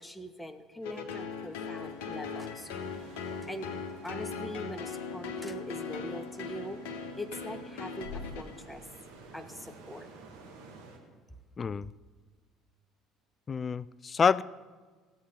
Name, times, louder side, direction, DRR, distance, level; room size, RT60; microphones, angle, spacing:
voice 1, 0.0-2.7 3.0-3.1 3.4-3.7 4.0-6.8 7.2-8.8 9.3-10.1, left 1 dB, 10° left, 9 dB, 1.2 m, -42 dB
sound 1, 0.8-9.0, left 5 dB, 70° left, 1.3 m, -39 dB
sound 2, 1.8-11.0, right 4 dB, 75° right, 1.8 m, -52 dB
voice 2, 11.6-11.9 13.5-14.4, left 6 dB, 35° left, 20 dB, 0.4 m, -27 dB
16.0 x 8.3 x 5.6 m, 1.4 s
figure-of-eight pair, 60°, 0 cm